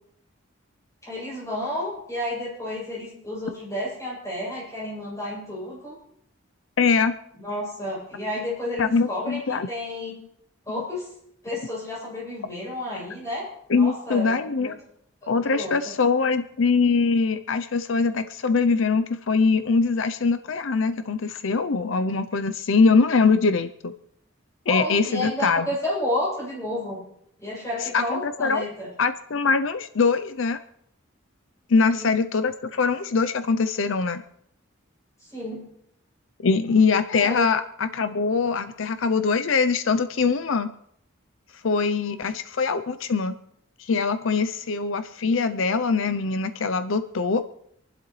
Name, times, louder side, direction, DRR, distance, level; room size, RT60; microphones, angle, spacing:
voice 1, 1.0-6.0 7.4-10.2 10.6-11.1 11.4-13.5 13.7-14.3 14.6-14.7 15.2-15.7 24.7-27.0 27.4-28.9 31.9-32.1 35.2-35.6 37.2-37.5, left 1 dB, 15° left, -7 dB, 7.7 m, -31 dB
voice 2, 6.8-7.1 8.8-9.7 13.7-14.8 15.3-23.9 24.7-25.7 27.8-28.6 29.0-30.6 31.7-34.2 36.4-40.7 41.6-43.3 43.8-47.4, left 4 dB, 75° left, 11 dB, 0.6 m, -22 dB
27.0 x 11.5 x 3.2 m, 0.72 s
head